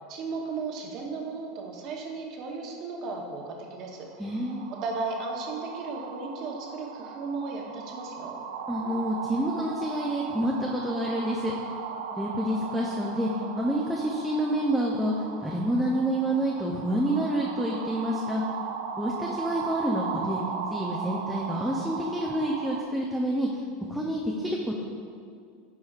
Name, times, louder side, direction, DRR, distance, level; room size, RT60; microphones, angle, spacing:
voice 1, 0.1-8.4, right 4 dB, 40° right, 1 dB, 0.9 m, -35 dB
sound 1, 3.6-22.8, right 6 dB, 80° right, 0.5 m, -37 dB
voice 2, 4.2-4.7 8.7-11.6 12.1-13.3 13.6-15.1 15.4-18.4 19.0-20.4 20.7-23.5 23.9-24.8, right 1 dB, ahead, -3 dB, 0.4 m, -28 dB
9.8 x 4.8 x 2.4 m, 2.3 s
supercardioid pair, 155°, 0 cm